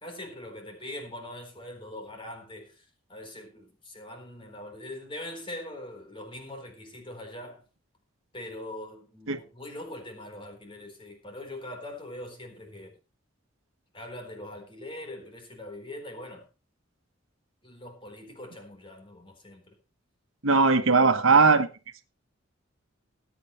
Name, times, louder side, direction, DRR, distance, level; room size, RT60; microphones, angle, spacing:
voice 1, 0.0-7.6 8.3-12.9 13.9-16.5 17.6-19.8, left 1 dB, 25° left, 4.1 m, -42 dB
voice 2, 20.4-21.7, right 4 dB, 80° right, 1.3 m, -19 dB
20.5 x 8.6 x 3.2 m
head